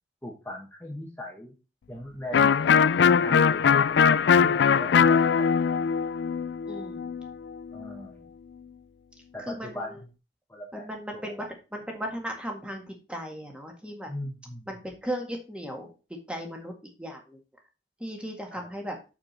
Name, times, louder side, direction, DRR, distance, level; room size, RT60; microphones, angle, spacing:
voice 1, 0.2-1.5 1.9-5.9 7.7-8.3 9.3-10.0 10.5-10.9 14.1-14.7 18.5-18.7, left 1 dB, 10° left, -1 dB, 1.2 m, -40 dB
Electric guitar, 2.3-7.9, left 6 dB, 70° left, 0.4 m, -21 dB
voice 2, 6.7-7.2 9.4-10.0 10.7-14.1 14.7-17.4 18.0-19.0, equal, 5° right, 2 dB, 1.7 m, -37 dB
6.8 x 6.5 x 4.3 m, 0.32 s
head